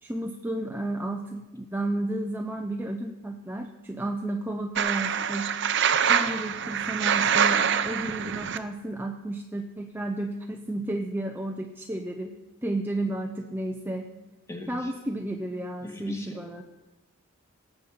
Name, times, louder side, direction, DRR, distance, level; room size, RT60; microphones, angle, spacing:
voice 1, 0.0-5.5 6.1-12.3 12.6-14.1 14.7-16.6, right 1 dB, 10° right, 3 dB, 0.6 m, -32 dB
sound 1, 4.8-8.6, right 7 dB, 55° right, 0.7 m, -25 dB
voice 2, 14.5-14.9 15.8-16.4, left 1 dB, 15° left, 2 dB, 1.8 m, -37 dB
17.5 x 8.0 x 5.8 m, 1.1 s
head